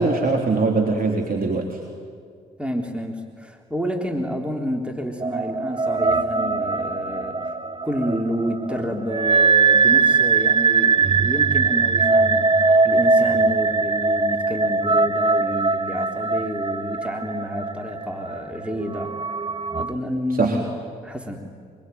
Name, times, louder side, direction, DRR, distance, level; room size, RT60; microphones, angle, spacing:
voice 1, 0.0-1.8 20.4-20.6, right 3 dB, 45° right, 1 dB, 3.7 m, -21 dB
voice 2, 2.6-7.6 7.8-12.6 12.8-19.1 19.7-20.7 21.0-21.5, equal, 5° right, 3 dB, 3.6 m, -29 dB
sound 1, 5.2-19.9, right 4 dB, 25° right, 1.1 m, -21 dB
24.5 x 24.5 x 9.4 m, 2.1 s
hypercardioid pair, 45°, 20 cm